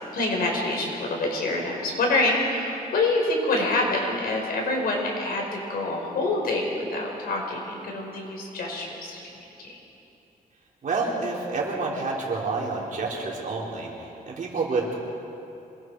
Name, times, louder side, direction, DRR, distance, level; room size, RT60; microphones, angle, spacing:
voice 1, 0.1-9.8, left 2 dB, 85° left, 0 dB, 4.7 m, -26 dB
voice 2, 10.8-15.0, right 3 dB, 60° right, -3 dB, 4.2 m, -29 dB
26.5 x 21.5 x 4.8 m, 2.8 s
wide cardioid pair, 130°, 15 cm